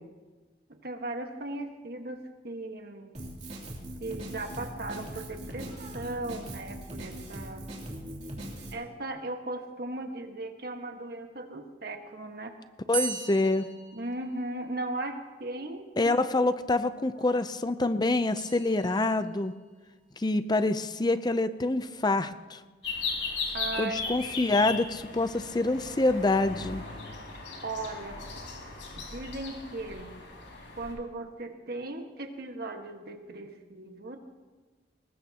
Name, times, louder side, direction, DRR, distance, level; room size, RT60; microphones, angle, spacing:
voice 1, 0.7-3.1 4.0-7.6 8.7-12.5 13.9-16.2 17.1-17.4 23.5-24.1 27.6-28.2 29.0-30.1 30.7-34.2, right 2 dB, 55° right, 4 dB, 1.5 m, -37 dB
Drum kit, 3.1-8.7, right 1 dB, 40° right, 2.9 m, -40 dB
voice 2, 12.9-13.7 16.0-19.5 20.2-22.6 23.8-26.8, left 2 dB, 20° left, 12 dB, 0.5 m, -26 dB
sound 1, 12.9-14.9 18.4-19.4, right 7 dB, 20° right, 2.0 m, -38 dB
sound 2, 22.8-30.9, left 4 dB, 80° left, 4.2 m, -37 dB
21.5 x 19.5 x 2.9 m, 1.3 s
head